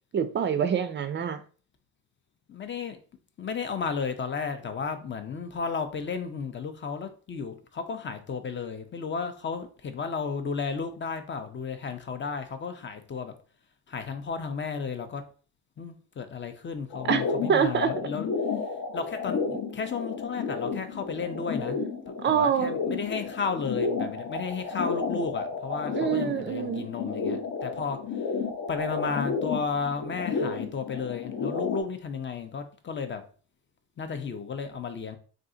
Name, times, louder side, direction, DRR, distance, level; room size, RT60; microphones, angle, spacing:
voice 1, 0.1-1.4 17.0-17.2 17.5-17.9 22.2-22.8 25.9-26.9, right 7 dB, 30° right, 0.4 m, -25 dB
voice 2, 2.5-3.0 3.4-13.3 13.9-15.2 15.8-18.3 18.9-21.8 22.1-28.0 28.7-33.2 34.0-35.2, left 5 dB, 30° left, 0.5 m, -33 dB
sound 1, 16.9-31.8, left 5 dB, 55° left, 0.8 m, -32 dB
2.5 x 2.4 x 3.7 m
cardioid pair, 100°, 39 cm